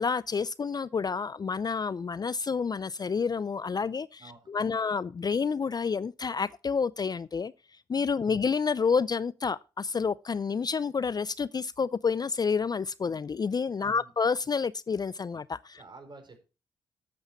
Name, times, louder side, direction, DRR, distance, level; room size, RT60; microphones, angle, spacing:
voice 1, 0.0-4.2 4.5-7.5 7.9-15.8, left 5 dB, 35° left, 0.4 m, -29 dB
voice 2, 4.2-4.8 8.2-8.4 13.8-14.1 15.7-16.4, right 3 dB, 40° right, 4.5 m, -51 dB
11.5 x 8.0 x 4.4 m
hypercardioid pair, 45°, 12 cm